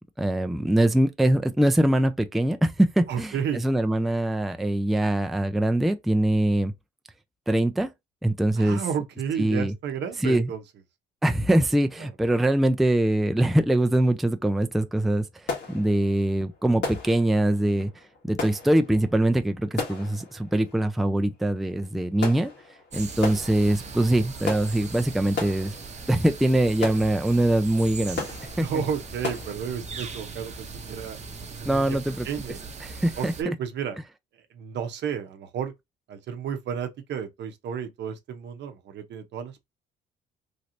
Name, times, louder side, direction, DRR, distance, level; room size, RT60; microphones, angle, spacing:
voice 1, 0.2-6.7 7.5-7.9 8.2-8.8 9.4-9.7 10.2-10.5 11.2-15.2 15.7-17.9 18.2-22.5 22.9-25.7 26.1-28.3 28.6-28.7 31.7-32.3 32.8-33.3, right 1 dB, ahead, 0.4 m, -23 dB
voice 2, 3.1-3.6 8.6-10.6 12.0-12.1 28.6-31.2 31.6-32.0 32.2-32.6 33.2-34.0 34.5-35.7 36.1-39.7, right 7 dB, 65° right, 0.7 m, -32 dB
sound 1, 14.6-14.7 14.9-29.5, left 4 dB, 65° left, 1.5 m, -37 dB
sound 2, 22.9-33.4, right 4 dB, 35° right, 0.8 m, -39 dB
3.2 x 2.8 x 2.5 m
supercardioid pair, 80°, 20 cm